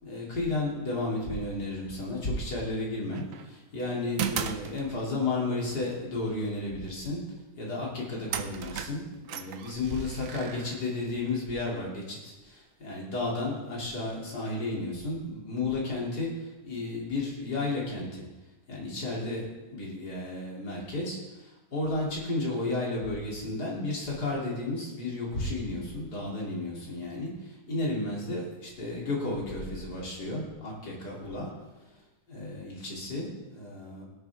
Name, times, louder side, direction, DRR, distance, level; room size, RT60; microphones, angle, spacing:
voice 1, 0.0-7.2 7.6-18.3 18.7-19.4 19.7-31.5 32.3-34.0, left 2 dB, 75° left, -4 dB, 3.4 m, -33 dB
sound 1, 3.1-3.5 4.2-5.3 7.7-7.8 8.3-11.3, right 8 dB, 65° right, 1.0 m, -36 dB
18.0 x 8.1 x 3.5 m, 1.1 s
omnidirectional pair, 1.7 m